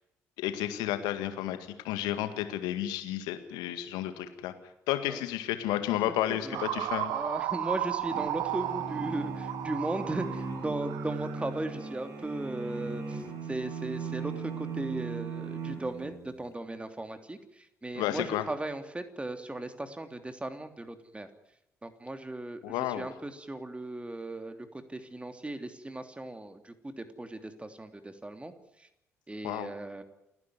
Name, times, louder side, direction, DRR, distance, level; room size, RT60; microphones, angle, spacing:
voice 1, 0.4-1.6 1.8-4.5 4.9-7.1 18.0-18.5 22.6-23.1 29.4-29.7, left 13 dB, 70° left, 9 dB, 2.0 m, -31 dB
voice 2, 6.3-6.6 7.1-13.2 13.5-21.3 21.8-24.6 24.9-28.5 28.8-28.9 29.3-30.0, right 2 dB, 15° right, 8 dB, 3.1 m, -37 dB
sound 1, 6.5-11.6, right 13 dB, 70° right, 1.1 m, -34 dB
sound 2, 8.1-16.4, right 4 dB, 50° right, 6.8 m, -38 dB
29.0 x 11.0 x 9.5 m, 0.86 s
figure-of-eight pair, 45°, 7 cm